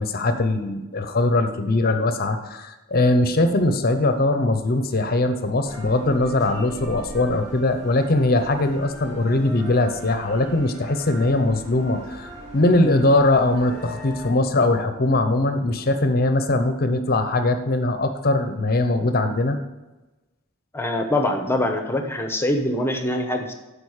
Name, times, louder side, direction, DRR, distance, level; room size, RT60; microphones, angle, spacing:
voice 1, 0.0-19.6, left 2 dB, 45° left, 8 dB, 0.8 m, -21 dB
sound 1, 5.6-14.3, equal, 35° right, 3.6 m, -39 dB
voice 2, 20.7-23.5, left 1 dB, 10° left, 4 dB, 0.9 m, -24 dB
12.0 x 5.1 x 6.4 m, 1.1 s
head